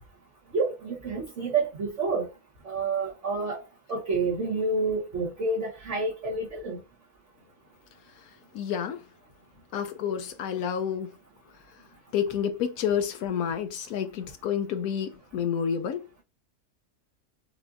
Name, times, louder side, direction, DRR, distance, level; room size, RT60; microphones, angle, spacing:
voice 1, 0.5-2.3 2.6-3.6 3.9-6.8, right 3 dB, 55° right, 1.3 m, -28 dB
voice 2, 8.2-9.0 9.7-11.1 12.1-16.1, left 8 dB, 75° left, 1.0 m, -29 dB
5.9 x 2.7 x 2.5 m
omnidirectional pair, 1.6 m